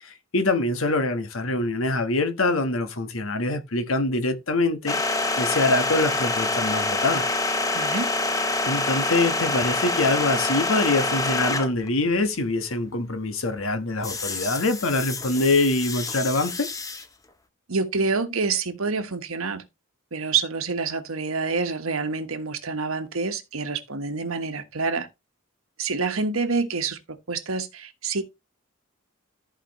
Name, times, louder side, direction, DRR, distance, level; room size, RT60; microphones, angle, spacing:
voice 1, 0.0-5.0 5.4-7.3 8.7-16.7, left 2 dB, 75° left, 1.3 m, -24 dB
sound 1, 4.9-11.9 14.0-17.0, left 3 dB, 15° left, 0.7 m, -26 dB
voice 2, 7.7-8.1 17.7-19.6 20.1-25.1 25.8-27.0 27.3-28.2, right 4 dB, 85° right, 1.3 m, -27 dB
14.0 x 5.1 x 3.1 m
head